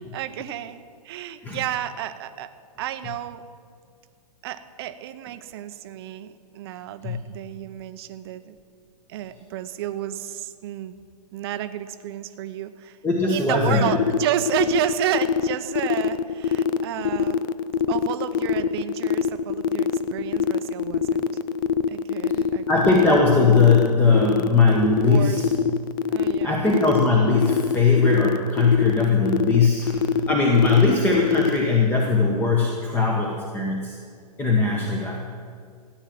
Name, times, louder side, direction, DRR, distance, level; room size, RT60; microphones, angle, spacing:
voice 1, 0.0-2.5 2.8-3.4 4.4-8.5 9.1-10.9 11.3-13.0 13.3-17.4 17.9-21.2 21.9-22.7 25.0-25.4 26.1-26.7, right 11 dB, 40° right, 10 dB, 0.8 m, -31 dB
voice 2, 13.0-13.9 22.7-25.5 26.4-34.0 34.4-35.2, left 4 dB, 10° left, -1 dB, 1.1 m, -20 dB
sound 1, 13.9-31.6, left 7 dB, 30° left, 0.4 m, -23 dB
14.5 x 9.1 x 7.5 m, 2.1 s
hypercardioid pair, 140°, 21 cm